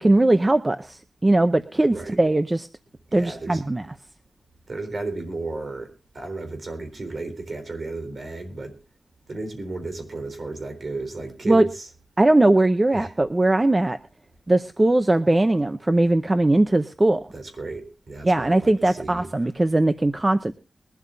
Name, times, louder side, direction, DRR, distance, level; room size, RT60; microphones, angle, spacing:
voice 1, 0.0-2.7 3.1-3.8 11.5-11.7 12.2-14.0 14.5-17.2 18.2-20.5, right 2 dB, 20° right, 11 dB, 0.6 m, -20 dB
voice 2, 3.1-3.6 4.7-8.8 9.3-11.9 12.9-13.1 17.3-19.3, right 3 dB, 50° right, 7 dB, 3.7 m, -33 dB
22.0 x 12.5 x 2.6 m, 0.31 s
wide cardioid pair, 130°, 0 cm